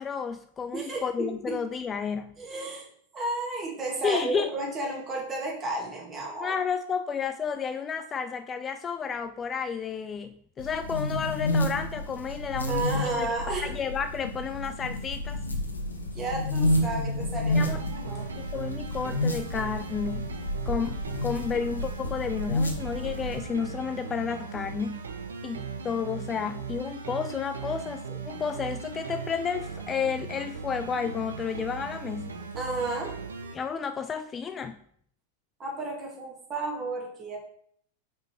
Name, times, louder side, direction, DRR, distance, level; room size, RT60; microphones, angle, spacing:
voice 1, 0.0-2.4 4.0-4.5 6.4-12.8 13.2-13.3 13.6-15.4 17.5-17.8 18.4-20.3 20.7-25.1 25.4-32.4 33.5-34.8, left 6 dB, 20° left, 9 dB, 0.3 m, -31 dB
voice 2, 0.7-1.6 2.4-2.9 3.1-6.5 12.7-13.6 16.1-18.3 32.6-33.2 35.6-37.4, right 2 dB, 25° right, -1 dB, 2.1 m, -32 dB
sound 1, 10.6-23.5, left 1 dB, 80° left, 1.0 m, -30 dB
sound 2, 17.5-33.5, right 5 dB, 70° right, 0.7 m, -38 dB
5.1 x 4.5 x 4.3 m, 0.64 s
figure-of-eight pair, 90°, 0 cm